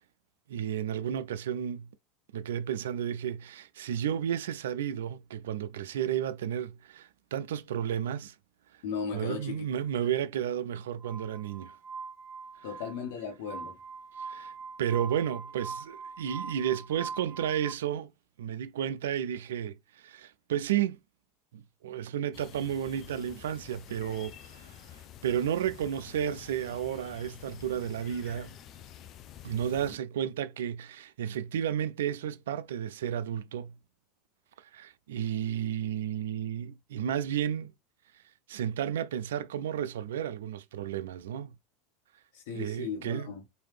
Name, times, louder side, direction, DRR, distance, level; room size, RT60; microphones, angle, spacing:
voice 1, 0.5-1.9 2.3-8.3 9.1-11.8 14.2-14.5 14.8-18.1 18.4-21.0 21.5-24.7 25.2-28.5 29.4-33.7 34.7-37.7 38.5-41.5 42.5-43.3, right 9 dB, 75° right, 0.3 m, -32 dB
voice 2, 8.8-9.7 12.6-13.8 42.3-43.4, left 6 dB, 65° left, 1.3 m, -36 dB
Glass, 11.0-17.7, right 5 dB, 50° right, 0.7 m, -42 dB
sound 1, 22.3-30.0, left 10 dB, 45° left, 0.5 m, -49 dB
3.2 x 2.7 x 3.1 m
hypercardioid pair, 80°, 0 cm